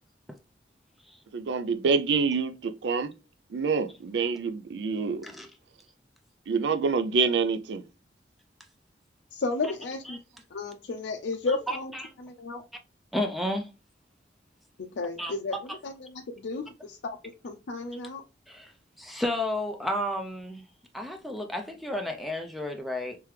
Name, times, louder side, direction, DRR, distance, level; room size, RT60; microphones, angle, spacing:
voice 1, 1.3-3.1 3.5-5.2 6.5-7.8, right 5 dB, 75° right, 0.4 m, -26 dB
voice 2, 9.3-10.2 10.5-11.9 12.2-12.6 15.0-17.2 17.4-18.2, left 3 dB, 80° left, 0.5 m, -33 dB
voice 3, 11.5-12.1 13.1-13.7 15.2-15.3 18.5-18.7 19.0-20.6 20.9-23.2, left 1 dB, ahead, 0.4 m, -32 dB
3.4 x 3.3 x 3.1 m
head